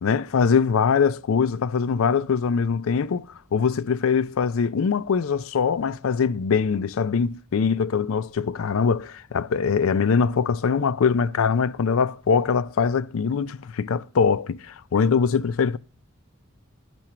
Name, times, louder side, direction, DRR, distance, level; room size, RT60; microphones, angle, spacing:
voice 1, 0.0-3.3 3.5-15.8, left 6 dB, 75° left, 0.4 m, -22 dB
8.8 x 6.1 x 6.0 m
head